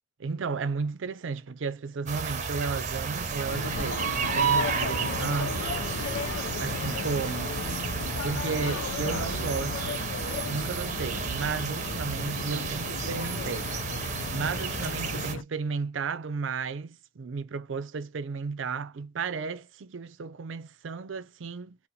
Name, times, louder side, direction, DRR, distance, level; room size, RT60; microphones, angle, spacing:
voice 1, 0.2-5.6 6.6-7.6 8.2-10.0 10.5-13.7 14.3-21.8, right 5 dB, 85° right, 0.5 m, -33 dB
sound 1, 2.1-15.3, right 5 dB, 40° right, 0.6 m, -32 dB
sound 2, 3.5-15.4, left 6 dB, 80° left, 0.4 m, -35 dB
4.3 x 2.1 x 2.7 m
head